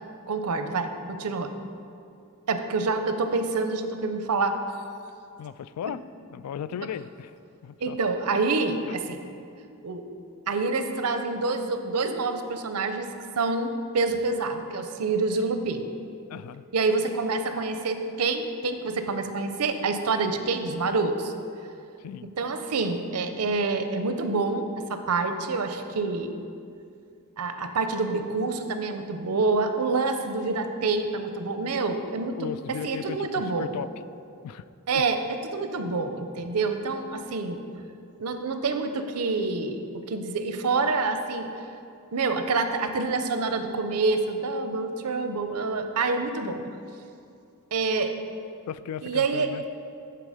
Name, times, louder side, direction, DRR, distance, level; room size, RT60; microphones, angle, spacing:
voice 1, 0.3-1.5 2.5-4.8 7.8-9.2 9.8-10.0 10.5-15.9 16.7-21.3 22.4-26.4 27.4-33.8 34.9-35.2 35.5-37.6 38.2-41.5 42.1-46.6 47.7-48.1 49.0-49.6, right 3 dB, 90° right, 8 dB, 0.6 m, -27 dB
voice 2, 5.4-6.0 6.3-7.3 7.6-8.0 16.3-16.6 22.0-22.3 32.4-33.9 34.4-34.6 34.9-35.0 48.7-49.6, left 8 dB, 80° left, 16 dB, 0.3 m, -36 dB
11.5 x 4.5 x 4.9 m, 2.5 s
head